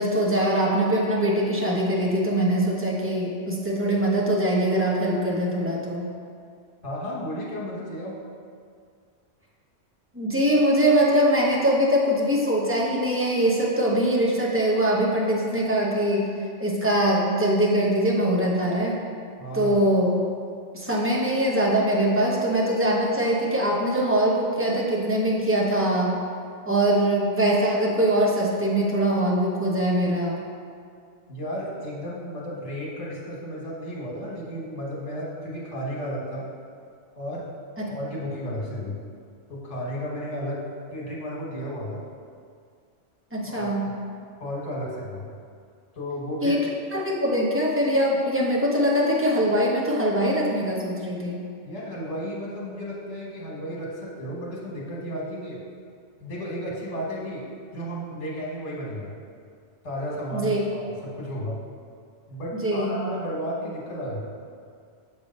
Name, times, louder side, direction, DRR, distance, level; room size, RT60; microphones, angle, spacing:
voice 1, 0.0-6.1 10.1-16.3 16.6-19.0 19.5-20.1 20.7-26.1 26.6-30.4 37.8-37.9 43.3-43.8 46.4-46.6 46.9-51.4 60.3-60.6 62.5-63.0, right 1 dB, 10° right, -4 dB, 0.8 m, -22 dB
voice 2, 6.8-8.2 19.4-19.8 31.3-36.4 37.2-37.5 37.9-39.0 39.5-40.6 40.9-42.0 43.4-43.9 44.4-45.3 45.9-46.6 51.6-55.6 56.2-57.4 57.7-59.1 59.8-61.6 62.3-64.2, equal, 70° left, -4 dB, 1.6 m, -33 dB
7.0 x 3.3 x 5.2 m, 2.2 s
omnidirectional pair, 1.3 m